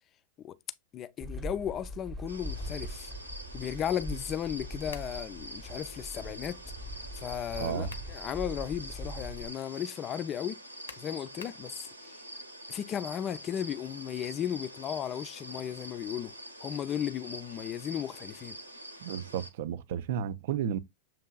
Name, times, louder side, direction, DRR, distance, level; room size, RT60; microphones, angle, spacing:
voice 1, 0.9-3.1 3.5-6.6 7.2-10.6 11.0-12.2 12.7-16.3 16.6-18.6, left 10 dB, 30° left, 0.4 m, -35 dB
sound 1, 1.2-9.5, equal, 15° right, 0.8 m, -42 dB
sound 2, 2.3-19.5, right 1 dB, 85° right, 0.8 m, -45 dB
sound 3, 4.9-5.2 7.6-8.2 8.7-8.8 10.9-11.7, left 6 dB, 65° left, 0.7 m, -48 dB
voice 2, 7.6-7.9 19.0-20.8, right 9 dB, 55° right, 0.4 m, -32 dB
7.2 x 2.9 x 2.3 m
figure-of-eight pair, 90°, 0 cm